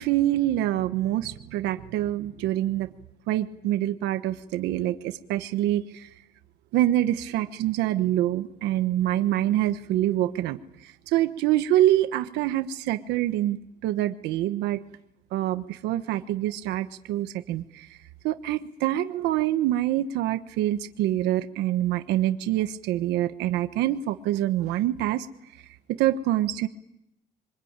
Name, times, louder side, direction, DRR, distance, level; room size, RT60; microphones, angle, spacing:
voice 1, 0.0-2.9 3.3-6.1 6.7-14.8 15.3-18.0 18.2-25.3 25.6-26.7, right 13 dB, 90° right, 9 dB, 1.2 m, -26 dB
26.5 x 24.0 x 9.0 m, 0.85 s
cardioid pair, 110°, 17 cm